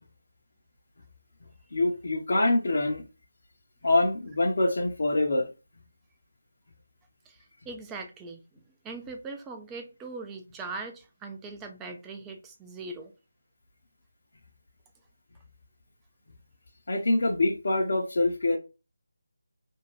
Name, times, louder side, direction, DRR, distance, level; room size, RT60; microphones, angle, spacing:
voice 1, 1.7-3.0 3.8-5.5 16.9-18.6, left 2 dB, 55° left, 0.6 m, -25 dB
voice 2, 7.7-8.4 8.8-13.1, right 3 dB, 10° right, 0.4 m, -40 dB
2.6 x 2.2 x 3.0 m
figure-of-eight pair, 160°, 0 cm